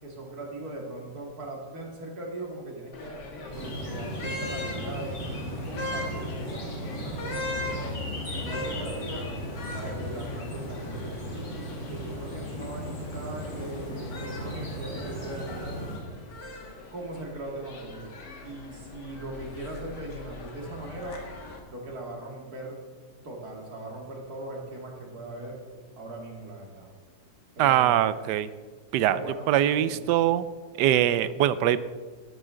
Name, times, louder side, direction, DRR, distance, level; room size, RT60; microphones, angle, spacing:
voice 1, 0.0-5.2 5.6-8.0 8.3-9.3 9.7-15.8 16.9-18.1 18.4-21.2 21.7-22.8 23.2-25.6 26.0-26.9 27.5-28.2 29.0-30.0, right 2 dB, 65° right, -1 dB, 2.8 m, -40 dB
sound 1, 2.9-21.6, left 2 dB, 85° left, 2.2 m, -41 dB
sound 2, 3.5-16.0, equal, 60° left, 3.2 m, -36 dB
voice 2, 27.6-28.5 28.9-29.2 29.5-30.5 30.8-31.8, right 11 dB, 90° right, 15 dB, 1.2 m, -22 dB
12.5 x 12.0 x 3.8 m, 1.5 s
omnidirectional pair, 1.8 m